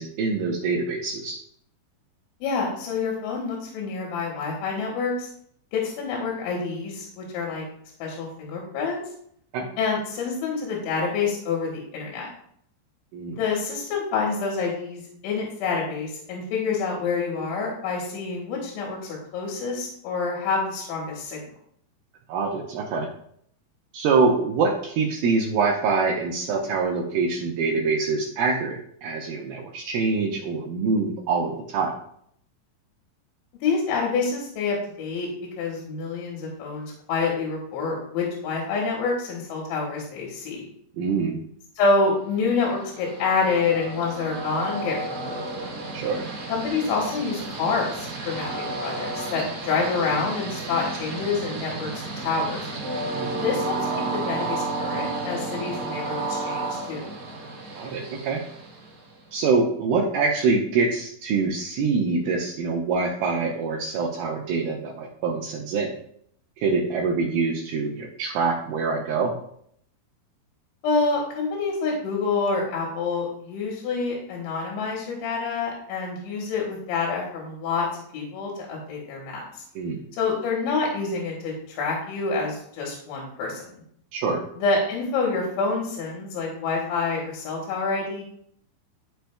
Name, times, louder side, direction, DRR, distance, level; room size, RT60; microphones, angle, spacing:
voice 1, 0.0-1.4 9.5-9.7 13.1-13.4 22.3-23.1 23.9-31.9 41.0-41.4 45.9-46.3 53.1-53.3 57.7-58.4 59.3-65.9 66.6-69.3 79.8-80.0 84.1-84.4, right 4 dB, 85° right, -2 dB, 2.1 m, -25 dB
voice 2, 2.4-5.3 5.7-7.6 8.0-9.0 9.8-12.3 13.4-21.4 33.6-35.3 35.6-40.7 41.8-45.4 46.5-52.7 53.4-57.1 70.8-77.9 78.1-79.4 80.2-83.7 84.6-88.2, left 4 dB, 80° left, -2 dB, 3.7 m, -27 dB
Train, 42.5-59.2, right 2 dB, 60° right, 1.6 m, -32 dB
13.0 x 5.2 x 2.3 m, 0.67 s
omnidirectional pair, 5.3 m